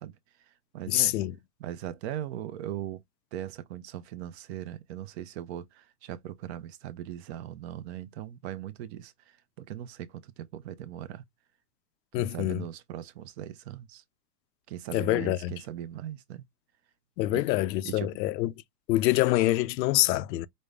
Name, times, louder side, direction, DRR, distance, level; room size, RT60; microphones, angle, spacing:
voice 1, 0.0-1.2 1.6-3.0 3.3-11.2 12.1-14.0 14.7-16.4 17.3-17.4 17.8-18.1, right 11 dB, 45° right, 0.5 m, -39 dB
voice 2, 0.9-1.4 12.1-12.7 14.9-15.5 17.2-18.5 18.9-20.5, left 16 dB, 85° left, 0.6 m, -26 dB
5.2 x 2.1 x 3.2 m
supercardioid pair, 155°, 49 cm